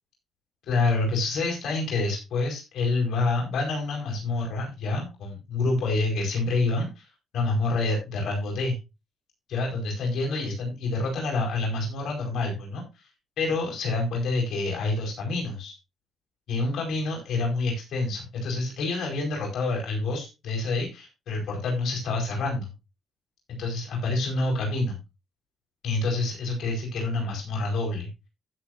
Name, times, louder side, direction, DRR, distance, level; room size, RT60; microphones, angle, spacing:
voice 1, 0.7-7.1 7.3-8.8 9.5-12.8 13.4-15.8 16.5-22.7 23.5-25.0 25.8-28.1, left 3 dB, 70° left, 0 dB, 4.8 m, -27 dB
15.5 x 7.0 x 2.7 m, 0.25 s
cardioid pair, 90°, 0 cm